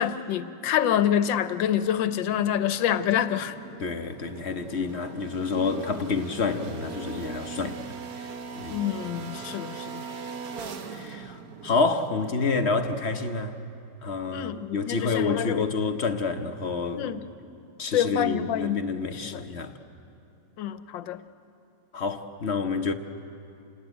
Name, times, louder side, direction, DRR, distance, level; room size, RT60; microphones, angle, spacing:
voice 1, 0.0-3.6 8.7-10.0 14.3-15.7 16.9-17.2 17.9-18.9 19.2-19.4 20.6-21.2, left 10 dB, 85° left, 1.5 m, -27 dB
sound 1, 1.5-13.3, right 5 dB, 55° right, 1.5 m, -41 dB
voice 2, 3.8-7.9 8.2-8.8 10.9-13.5 14.0-17.1 17.8-19.7 21.9-22.9, left 4 dB, 45° left, 1.0 m, -28 dB
28.0 x 19.0 x 9.0 m
omnidirectional pair, 2.0 m